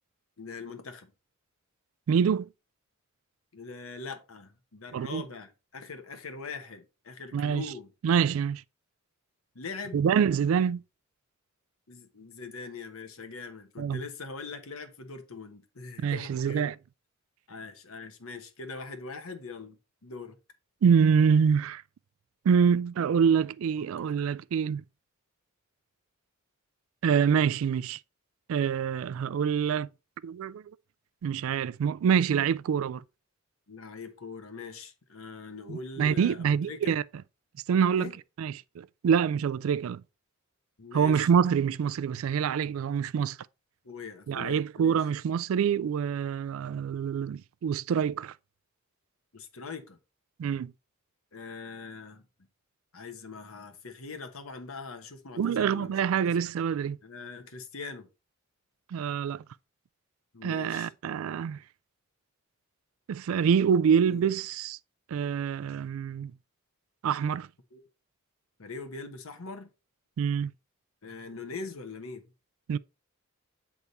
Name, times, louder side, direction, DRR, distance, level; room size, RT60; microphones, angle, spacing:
voice 1, 0.4-1.1 3.5-7.9 9.5-10.1 11.9-16.7 17.5-20.4 23.8-24.1 33.7-37.0 38.0-38.2 40.8-41.3 43.8-45.0 49.3-50.0 51.3-52.2 52.9-55.9 56.2-56.4 57.0-58.1 60.3-60.9 64.1-64.3 67.7-67.8 68.6-69.7 71.0-72.2, left 4 dB, 80° left, 1.1 m, -42 dB
voice 2, 2.1-2.5 4.9-5.2 7.3-7.6 8.0-8.6 9.9-10.8 13.8-14.0 16.0-16.7 20.8-21.8 22.5-24.8 27.0-28.0 28.5-29.9 30.2-30.6 31.2-33.0 35.7-37.0 37.7-38.1 38.4-40.0 40.9-43.4 44.3-48.3 50.4-50.7 55.4-57.0 58.9-59.4 60.4-61.6 63.1-64.8 65.1-66.3 67.0-67.5 70.2-70.5 72.7-72.8, right 7 dB, 75° right, 0.3 m, -26 dB
8.1 x 3.6 x 4.0 m
head